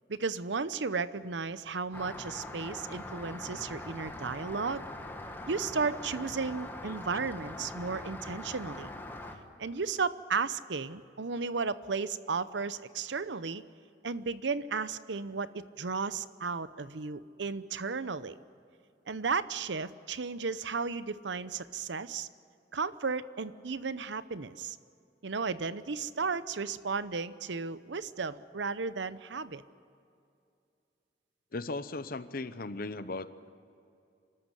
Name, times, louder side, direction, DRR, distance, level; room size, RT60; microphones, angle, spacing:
voice 1, 0.1-4.8 5.5-8.9 9.6-13.6 14.0-18.4 19.1-22.3 22.7-24.8 25.2-29.6, right 4 dB, 75° right, 15 dB, 0.8 m, -34 dB
Rain, 1.9-9.4, left 1 dB, 10° left, 1.6 m, -42 dB
voice 2, 31.5-33.5, left 2 dB, 55° left, 13 dB, 0.8 m, -37 dB
25.5 x 13.5 x 9.9 m, 2.5 s
head